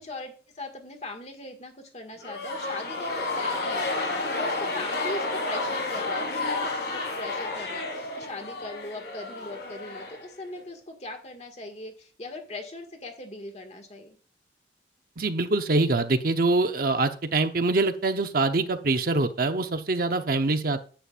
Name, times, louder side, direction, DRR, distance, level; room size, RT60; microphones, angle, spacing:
voice 1, 0.0-14.2, left 2 dB, 35° left, 4 dB, 1.8 m, -40 dB
sound 1, 2.2-10.6, left 2 dB, 65° left, 3.8 m, -31 dB
voice 2, 15.2-20.8, right 3 dB, 55° right, 7 dB, 0.8 m, -24 dB
10.5 x 8.9 x 2.5 m, 0.40 s
head